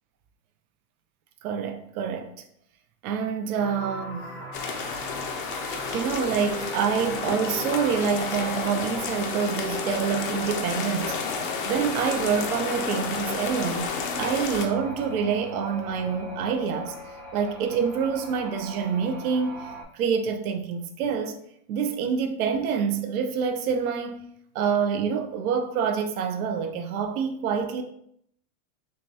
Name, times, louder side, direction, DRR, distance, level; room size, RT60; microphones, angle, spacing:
voice 1, 1.4-2.4 3.0-4.6 5.9-16.9 17.3-19.7 19.9-21.4 21.7-24.2 24.5-27.8, right 6 dB, 80° right, 0.6 m, -27 dB
sound 1, 3.6-9.8 14.1-19.8, equal, 15° right, 0.6 m, -40 dB
sound 2, 4.5-14.7, left 5 dB, 40° left, 0.4 m, -31 dB
sound 3, 7.3-19.0, left 1 dB, 40° right, 1.3 m, -41 dB
6.3 x 2.3 x 2.7 m
supercardioid pair, 180°, 42 cm